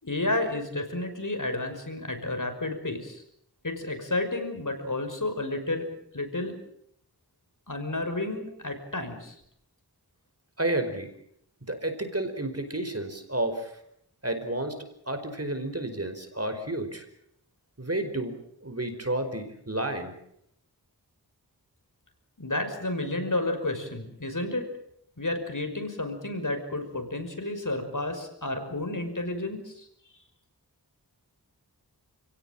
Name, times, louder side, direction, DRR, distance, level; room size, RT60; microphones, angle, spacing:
voice 1, 0.0-3.2 3.6-5.9 6.1-6.6 7.7-9.4 22.4-24.7 25.2-29.9, left 2 dB, 55° left, 6 dB, 5.8 m, -31 dB
voice 2, 10.6-11.1 11.7-13.7 14.2-14.8 15.1-17.0 17.8-18.3 18.6-20.1, right 1 dB, 40° right, 8 dB, 5.0 m, -31 dB
29.5 x 17.5 x 9.0 m, 0.71 s
wide cardioid pair, 45°, 38 cm